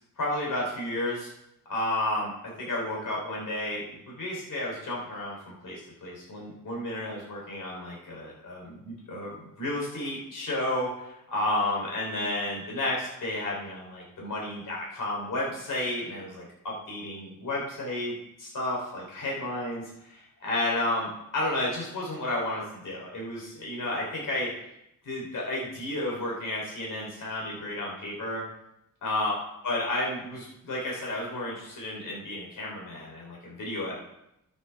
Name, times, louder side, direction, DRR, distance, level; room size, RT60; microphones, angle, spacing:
voice 1, 0.2-1.3 1.7-18.1 18.4-24.5 25.1-28.4 29.0-29.3 29.6-34.0, left 1 dB, 65° left, -3 dB, 3.5 m, -32 dB
13.0 x 9.2 x 3.4 m, 0.82 s
wide cardioid pair, 120°, 33 cm